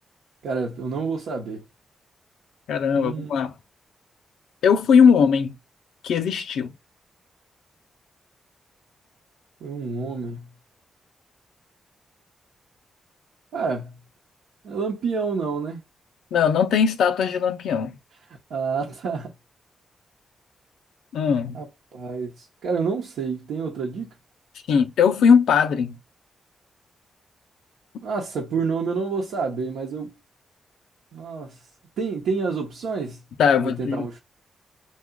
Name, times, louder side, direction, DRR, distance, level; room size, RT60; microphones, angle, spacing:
voice 1, 0.4-1.6 2.9-3.3 9.6-10.5 13.5-13.9 14.6-15.8 18.5-19.3 21.5-21.7 21.9-24.1 28.0-30.1 31.1-31.6 32.0-33.2 33.6-34.2, right 5 dB, 85° right, 0.8 m, -28 dB
voice 2, 2.7-3.5 4.6-5.6 6.0-6.7 16.3-17.9 21.1-21.6 24.7-26.0 33.4-34.2, left 6 dB, 85° left, 0.6 m, -19 dB
2.8 x 2.4 x 3.7 m
supercardioid pair, 50°, 0 cm